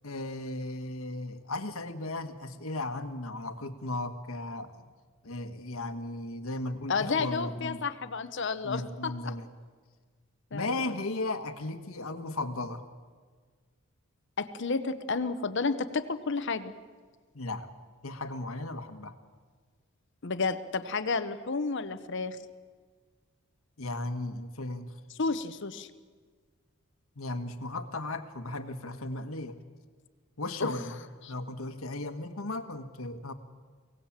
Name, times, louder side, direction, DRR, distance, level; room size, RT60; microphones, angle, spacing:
voice 1, 0.0-4.9 5.2-7.8 8.6-9.5 10.5-12.9 17.3-17.7 18.0-19.1 23.8-24.9 27.2-29.6 30.4-31.0 31.3-33.3, left 2 dB, 80° left, 8 dB, 1.5 m, -36 dB
voice 2, 6.9-9.3 10.5-11.0 14.4-16.7 20.2-22.4 25.1-25.9 30.6-31.3, left 4 dB, 55° left, 11 dB, 0.9 m, -31 dB
24.0 x 18.0 x 7.4 m, 1.5 s
head